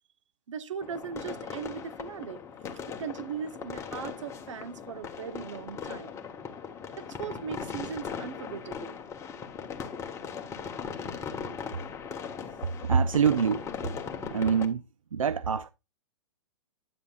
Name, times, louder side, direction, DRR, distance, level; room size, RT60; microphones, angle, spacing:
voice 1, 0.5-2.4 2.9-6.2 7.0-9.0, right 7 dB, 65° right, 1.0 m, -38 dB
sound 1, 0.8-14.7, left 6 dB, 15° left, 1.2 m, -39 dB
voice 2, 12.6-13.7 14.3-14.8 15.1-15.7, right 6 dB, 90° right, 0.4 m, -25 dB
9.4 x 7.0 x 2.4 m
hypercardioid pair, 120°, 17 cm